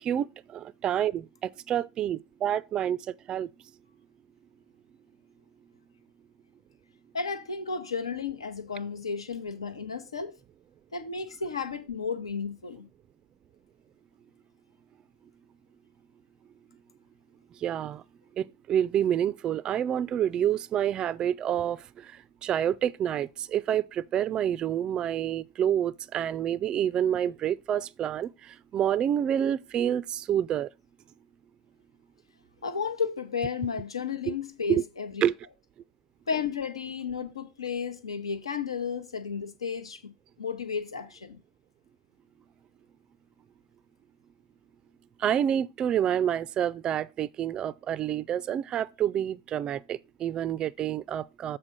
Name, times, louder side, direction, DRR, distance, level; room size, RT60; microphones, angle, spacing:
voice 1, 0.0-3.0 3.3-3.5 17.6-18.0 18.4-22.1 22.4-30.7 34.3-34.4 34.7-34.8 35.2-35.3 45.2-51.6, right 10 dB, 30° right, 0.3 m, -28 dB
voice 2, 7.1-10.4 10.9-12.9 32.6-35.2 36.3-40.0 40.4-41.4, left 5 dB, 85° left, 1.0 m, -33 dB
7.2 x 4.2 x 6.5 m
hypercardioid pair, 95°, 3 cm